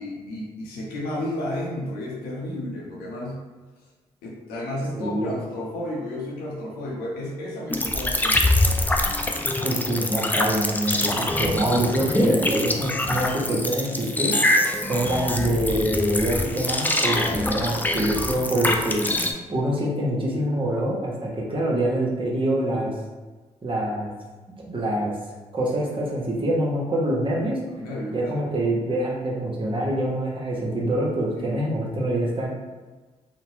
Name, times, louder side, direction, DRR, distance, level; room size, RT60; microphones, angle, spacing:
voice 1, 0.0-3.4 4.2-8.5 27.7-28.5 31.4-31.6, left 1 dB, 85° left, -4 dB, 0.7 m, -32 dB
voice 2, 4.9-5.4 9.6-14.3 14.8-19.1 19.5-22.9 23.6-24.1 24.6-25.1 25.5-27.6 28.1-32.5, right 1 dB, 35° right, -4 dB, 1.0 m, -25 dB
sound 1, 7.7-19.3, left 1 dB, 10° left, 0.4 m, -24 dB
2.9 x 2.1 x 3.1 m, 1.3 s
hypercardioid pair, 40°, 15 cm